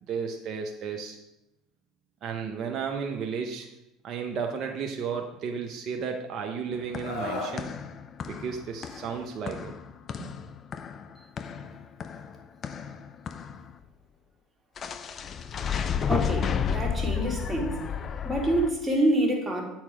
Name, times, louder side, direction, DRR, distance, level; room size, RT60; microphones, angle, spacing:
voice 1, 0.1-1.2 2.2-3.7 4.0-7.7 8.3-9.7, right 6 dB, 50° right, 3 dB, 0.8 m, -33 dB
sound 1, 6.7-13.7 14.8-18.7, left 7 dB, 40° left, 0.6 m, -32 dB
Screaming, 7.0-7.6 9.1-9.3, left 2 dB, 70° left, 2.0 m, -34 dB
voice 2, 16.1-17.8 18.2-19.6, right 1 dB, 15° right, 0 dB, 2.2 m, -26 dB
8.5 x 4.5 x 4.9 m, 0.88 s
hypercardioid pair, 75°, 0 cm